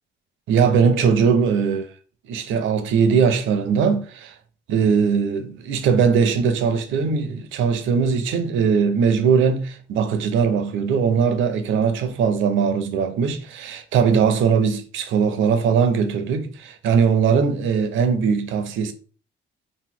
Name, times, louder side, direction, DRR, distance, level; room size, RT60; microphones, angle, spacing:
voice 1, 0.5-1.8 2.3-4.3 4.7-18.9, right 6 dB, 80° right, 0.5 m, -20 dB
2.9 x 2.1 x 3.6 m
cardioid pair, 90°, 20 cm